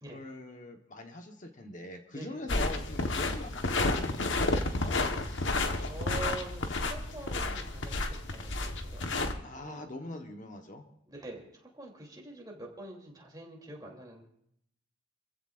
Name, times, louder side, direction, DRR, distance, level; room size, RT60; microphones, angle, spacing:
voice 1, 0.1-5.0 9.4-10.8, left 1 dB, 40° left, 4 dB, 1.2 m, -43 dB
voice 2, 2.1-2.6 5.2-9.1 9.6-9.8 11.1-14.2, right 2 dB, 20° right, -1 dB, 3.1 m, -45 dB
sound 1, 2.5-9.3, left 2 dB, 65° left, 1.3 m, -31 dB
26.5 x 15.5 x 2.5 m, 0.72 s
head